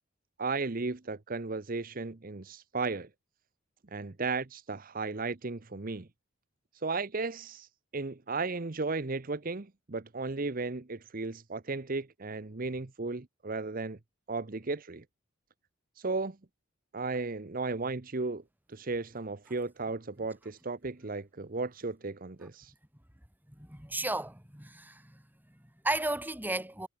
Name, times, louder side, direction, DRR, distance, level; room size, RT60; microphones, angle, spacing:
voice 1, 0.4-3.1 3.9-6.1 6.8-14.0 14.3-15.0 16.0-16.4 16.9-18.4 18.7-22.7, right 3 dB, 45° right, 0.9 m, -35 dB
voice 2, 23.5-25.2 25.5-26.9, right 2 dB, 10° right, 3.4 m, -34 dB
head